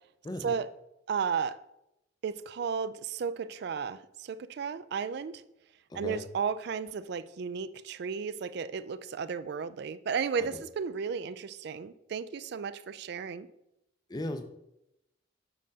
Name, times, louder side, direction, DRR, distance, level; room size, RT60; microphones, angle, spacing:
voice 1, 0.2-0.6 5.9-6.2 10.4-10.6 14.1-14.4, left 1 dB, 20° left, 9 dB, 0.5 m, -37 dB
voice 2, 1.1-1.6 2.2-5.4 5.9-13.5, right 6 dB, 55° right, 15 dB, 0.3 m, -34 dB
7.3 x 6.3 x 2.8 m, 0.86 s
head